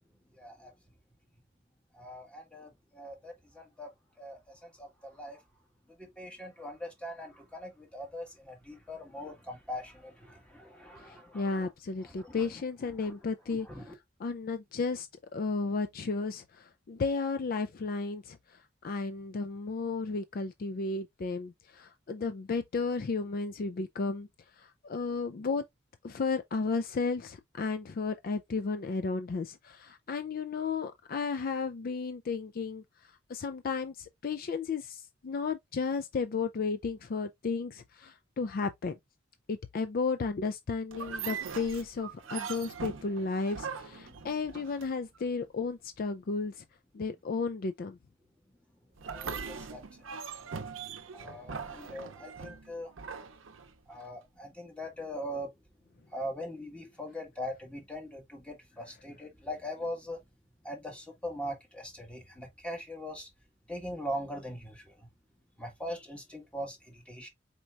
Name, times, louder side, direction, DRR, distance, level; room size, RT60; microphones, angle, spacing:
voice 1, 0.3-0.7 1.9-3.9 4.2-5.4 5.9-11.7 12.0-12.5 13.0-13.1 13.5-13.9 44.0-44.2 49.0-50.1 51.1-52.9 53.9-55.5 56.1-60.2 60.6-63.3 63.7-65.1 65.6-67.3, equal, 5° left, 1.6 m, -41 dB
voice 2, 11.0-13.7 14.2-24.3 24.6-25.7 26.0-39.0 39.5-46.6 46.9-48.0, left 4 dB, 50° left, 0.4 m, -33 dB
sound 1, 40.9-45.2 49.0-54.1, right 6 dB, 90° right, 0.6 m, -41 dB
4.4 x 4.3 x 2.4 m
head